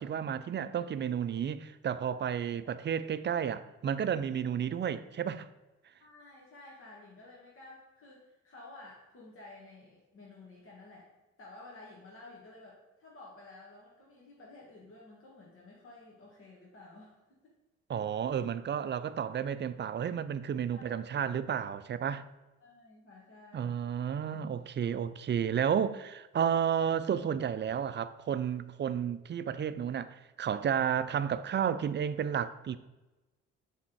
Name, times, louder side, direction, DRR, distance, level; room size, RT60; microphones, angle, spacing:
voice 1, 0.0-5.5 17.9-22.2 23.5-32.8, right 8 dB, 40° right, 0.4 m, -32 dB
voice 2, 6.0-11.1 11.4-17.5 20.7-21.2 22.6-23.8, left 2 dB, 45° left, 1.8 m, -53 dB
7.3 x 3.7 x 4.6 m
supercardioid pair, 55°, 30 cm